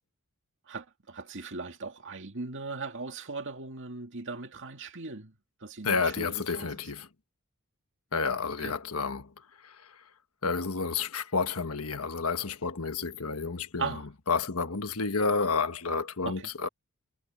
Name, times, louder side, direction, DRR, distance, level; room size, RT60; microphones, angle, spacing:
voice 1, 0.7-5.3 5.6-6.7 8.6-8.7 13.8-14.0 16.2-16.4, right 4 dB, 60° right, 2.2 m, -38 dB
voice 2, 5.8-7.1 8.1-9.3 9.6-10.0 10.4-14.0 14.3-16.7, left 4 dB, 75° left, 1.4 m, -30 dB
head